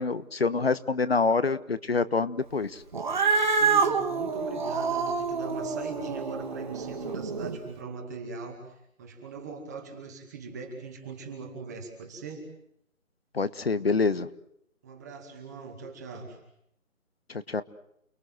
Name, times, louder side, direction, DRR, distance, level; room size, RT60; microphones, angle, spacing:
voice 1, 0.0-2.8 13.3-14.3 17.3-17.6, left 4 dB, 45° left, 14 dB, 1.3 m, -26 dB
Cat, 2.9-7.6, right 5 dB, 35° right, 2.3 m, -27 dB
voice 2, 3.3-12.5 14.8-16.4, right 4 dB, 10° right, 2 dB, 2.3 m, -41 dB
29.5 x 21.5 x 7.9 m, 0.77 s
figure-of-eight pair, 170°, 42 cm